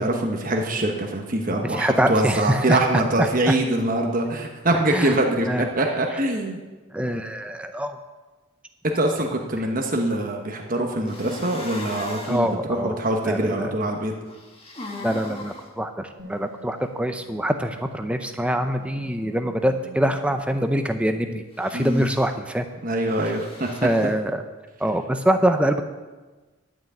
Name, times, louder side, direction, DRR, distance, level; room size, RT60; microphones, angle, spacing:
voice 1, 0.0-6.6 8.8-14.1 21.7-22.1 22.8-23.7, right 1 dB, 45° right, 2 dB, 1.1 m, -24 dB
voice 2, 1.5-3.6 4.9-5.2 5.5-5.7 6.9-8.0 9.6-9.7 12.3-13.0 13.2-13.7 15.0-22.7 23.2-23.3 23.8-24.4 24.8-25.8, equal, 5° right, 7 dB, 0.5 m, -24 dB
sound 1, 11.1-12.5 14.3-15.7 21.5-22.3 23.1-24.1, left 2 dB, 30° left, 1.7 m, -38 dB
Wind instrument woodwind instrument, 16.2-20.6, right 2 dB, 60° right, 2.5 m, -46 dB
11.5 x 6.2 x 8.5 m, 1.2 s
head